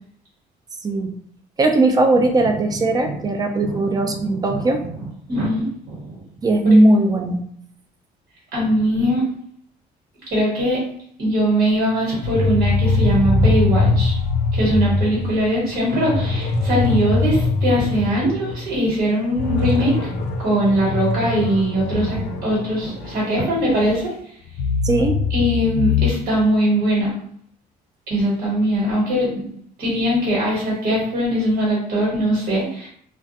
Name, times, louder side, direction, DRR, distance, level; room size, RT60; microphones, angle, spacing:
voice 1, 0.8-1.1 1.6-4.8 6.4-7.4 24.8-25.2, right 2 dB, 20° right, 5 dB, 0.4 m, -18 dB
voice 2, 3.6-4.6 5.3-6.2 8.5-9.3 10.3-10.8 11.2-14.1 14.5-20.1 20.4-24.1 25.3-27.1 28.1-29.4 29.8-32.9, equal, 65° right, -5 dB, 1.1 m, -21 dB
sound 1, 12.2-18.7 19.0-19.1 19.4-24.0 24.5-26.1, left 3 dB, 90° left, 0.5 m, -22 dB
2.2 x 2.1 x 2.8 m, 0.64 s
cardioid pair, 110°, 17 cm